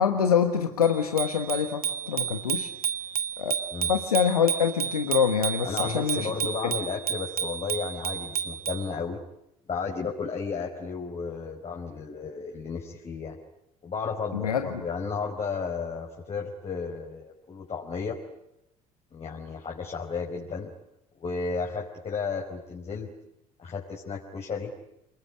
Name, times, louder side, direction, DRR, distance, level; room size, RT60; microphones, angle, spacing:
voice 1, 0.0-2.7 3.4-3.5 3.9-6.3 6.6-6.7 14.3-14.7, left 7 dB, 80° left, 7 dB, 1.4 m, -25 dB
Bicycle bell, 0.8-8.9, right 8 dB, 85° right, 1.3 m, -32 dB
voice 2, 5.6-9.2 9.7-13.4 13.8-18.2 19.1-20.7 21.2-23.1 23.6-24.7, left 5 dB, 35° left, -1 dB, 4.8 m, -33 dB
28.5 x 21.0 x 9.9 m, 0.84 s
figure-of-eight pair, 55°, 19 cm